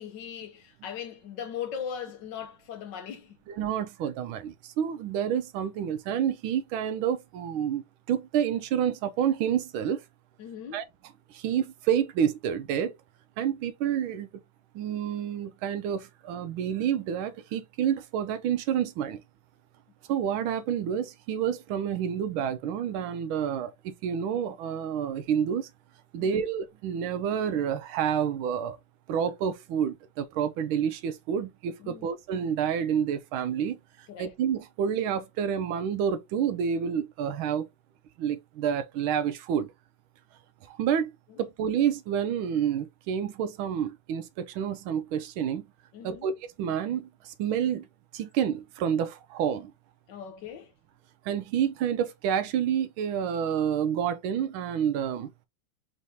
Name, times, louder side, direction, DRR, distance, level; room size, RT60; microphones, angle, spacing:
voice 1, 0.0-3.4 10.4-10.8 26.2-26.4 31.8-32.1 34.1-34.3 41.3-41.4 45.9-46.3 50.1-50.7, left 8 dB, 70° left, 1.3 m, -39 dB
voice 2, 3.6-10.0 10.7-10.8 11.3-12.9 13.4-14.3 14.7-19.2 20.1-25.7 26.1-28.8 29.1-33.8 34.2-37.7 38.2-39.7 40.7-41.1 41.4-45.7 46.0-47.9 48.1-49.7 51.2-55.3, right 8 dB, 85° right, 1.4 m, -29 dB
4.5 x 3.2 x 2.7 m
omnidirectional pair, 2.2 m